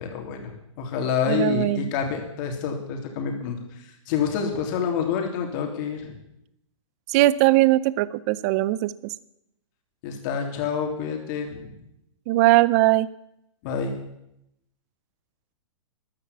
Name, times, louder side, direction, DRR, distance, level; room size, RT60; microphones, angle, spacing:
voice 1, 0.0-6.2 10.0-11.7 13.6-14.0, left 7 dB, 40° left, 3 dB, 3.2 m, -28 dB
voice 2, 1.3-1.9 7.1-9.1 12.3-13.1, right 17 dB, 30° right, 18 dB, 0.5 m, -20 dB
13.5 x 11.0 x 8.5 m, 0.82 s
hypercardioid pair, 155°, 17 cm